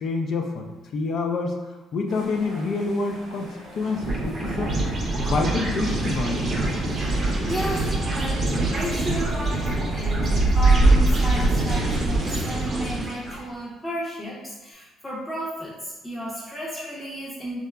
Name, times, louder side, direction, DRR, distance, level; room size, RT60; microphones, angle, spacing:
voice 1, 0.0-1.6 1.9-3.5 3.7-4.7 5.2-6.5, left 3 dB, 60° left, 2 dB, 0.3 m, -27 dB
sound 1, 2.1-12.2, right 2 dB, 75° right, 0.8 m, -26 dB
sound 2, 4.0-13.4, right 2 dB, 45° right, 0.6 m, -26 dB
voice 2, 7.5-17.6, equal, 10° left, -8 dB, 0.6 m, -33 dB
2.8 x 2.2 x 2.2 m, 1.1 s
supercardioid pair, 75°, 0 cm